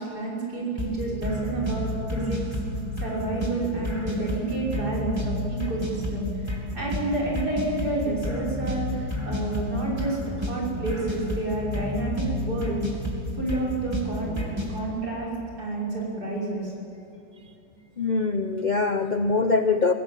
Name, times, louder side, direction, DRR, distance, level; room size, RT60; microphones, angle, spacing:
voice 1, 0.0-2.4 3.0-12.8 13.4-15.3 15.6-16.7, right 2 dB, 65° right, -3 dB, 6.6 m, -29 dB
sound 1, 0.8-14.8, left 1 dB, 15° right, 3.0 m, -31 dB
voice 2, 18.0-19.9, left 4 dB, 40° left, 8 dB, 0.6 m, -23 dB
22.5 x 17.0 x 9.1 m, 2.7 s
omnidirectional pair, 1.8 m